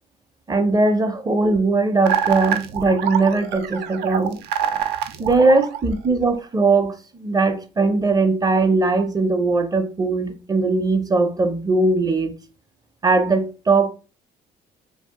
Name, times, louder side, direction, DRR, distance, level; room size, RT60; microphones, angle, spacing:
voice 1, 0.5-4.4 5.2-12.3 13.0-13.9, right 3 dB, 20° right, 0.5 m, -19 dB
sound 1, 2.1-6.3, right 9 dB, 80° right, 0.5 m, -25 dB
2.7 x 2.4 x 3.5 m
cardioid pair, 110°, 17 cm